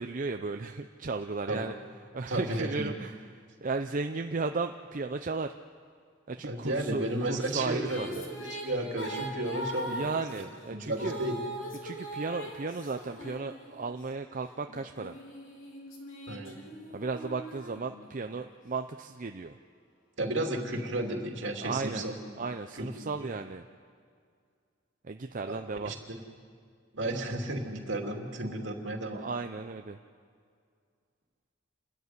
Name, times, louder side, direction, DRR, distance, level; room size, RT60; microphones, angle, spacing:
voice 1, 0.0-1.7 2.1-5.5 6.3-8.3 9.9-11.2 11.8-15.2 16.9-19.6 21.6-22.0 22.4-23.7 25.0-25.9 29.1-30.0, right 4 dB, 40° right, 6 dB, 0.6 m, -35 dB
voice 2, 2.3-2.9 6.4-10.0 10.7-11.4 16.3-16.6 20.2-22.4 22.8-23.3 25.5-25.6 25.8-26.2 26.9-29.2, right 1 dB, 65° right, 2 dB, 2.9 m, -33 dB
Female singing, 7.1-14.0 14.7-18.4, equal, 80° left, 3.4 m, -41 dB
28.0 x 13.5 x 9.5 m, 2.2 s
head